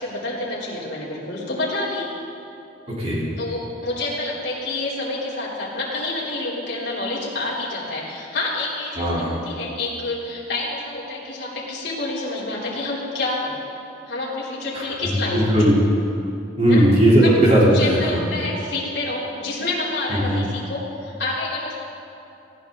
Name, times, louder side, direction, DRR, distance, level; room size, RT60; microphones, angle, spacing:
voice 1, 0.0-2.1 3.4-13.6 14.1-15.4 16.7-16.8 17.2-17.3 17.6-21.8, left 2 dB, 60° left, -7 dB, 3.9 m, -28 dB
voice 2, 2.9-3.3 9.0-9.4 14.7-15.8 16.6-18.2 20.2-20.4, right 1 dB, 35° right, -7 dB, 3.8 m, -17 dB
19.5 x 16.0 x 4.0 m, 2.7 s
head